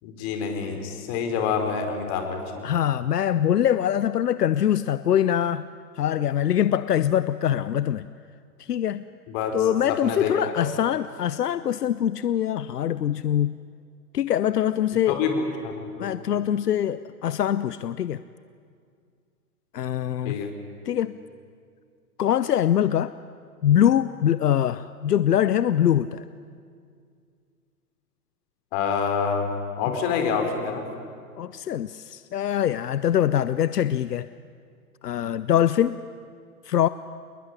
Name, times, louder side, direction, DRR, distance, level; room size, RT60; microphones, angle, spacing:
voice 1, 0.0-2.6 9.3-9.6 9.9-10.7 15.1-16.1 20.2-20.5 28.7-29.5 29.8-30.8, left 6 dB, 40° left, 5 dB, 4.8 m, -27 dB
voice 2, 2.6-5.6 6.0-8.1 8.6-9.0 9.5-13.6 14.1-15.2 16.0-18.2 19.7-20.4 20.9-21.1 22.2-23.1 23.6-26.2 31.4-34.3 35.0-36.0 36.6-36.9, left 10 dB, 80° left, 15 dB, 0.8 m, -23 dB
27.5 x 20.5 x 9.9 m, 2.2 s
hypercardioid pair, 120°, 46 cm